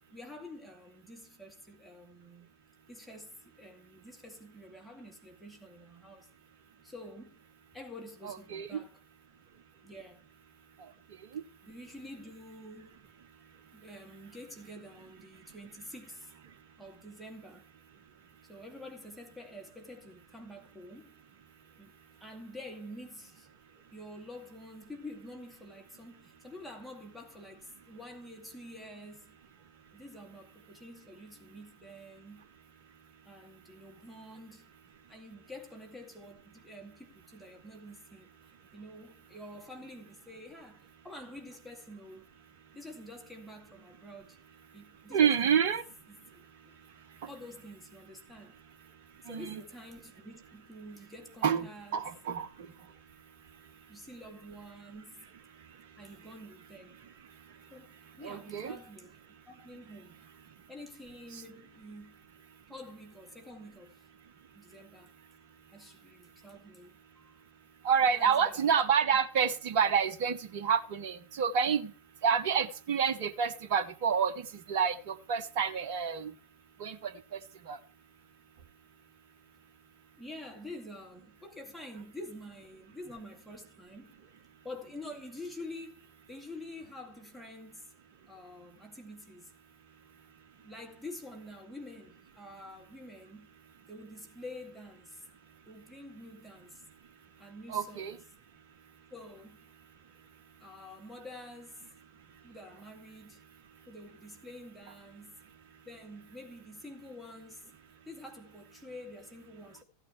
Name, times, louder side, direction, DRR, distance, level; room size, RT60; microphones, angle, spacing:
voice 1, 0.1-2.5 2.9-6.3 6.8-7.4 7.7-9.0 9.8-10.2 11.6-13.0 13.7-16.3 16.8-17.7 18.4-21.1 21.8-21.9 22.2-23.5 23.9-32.5 33.3-34.7 35.1-38.3 38.7-42.3 42.7-44.4 44.7-45.8 46.1-46.8 47.3-48.6 49.2-52.1 53.9-55.3 56.0-57.1 57.7-59.1 59.5-60.2 60.7-62.3 62.7-64.0 64.5-65.1 65.7-67.3 68.1-68.8 69.1-69.2 80.2-84.2 84.6-87.9 88.3-89.5 90.6-93.5 93.9-95.2 95.7-96.8 97.4-98.2 99.1-99.7 100.6-101.9 102.4-103.4 103.9-105.4 105.8-107.7 108.1-109.8, left 1 dB, ahead, 2.3 m, -48 dB
voice 2, 8.2-8.8 45.1-45.8 49.3-49.6 51.4-52.5 58.2-58.8 67.8-71.9 72.2-74.3 74.7-76.3 76.8-77.4 77.7-77.8 97.7-98.1, right 7 dB, 50° right, 1.0 m, -28 dB
15.0 x 9.1 x 3.2 m
figure-of-eight pair, 90°, 0 cm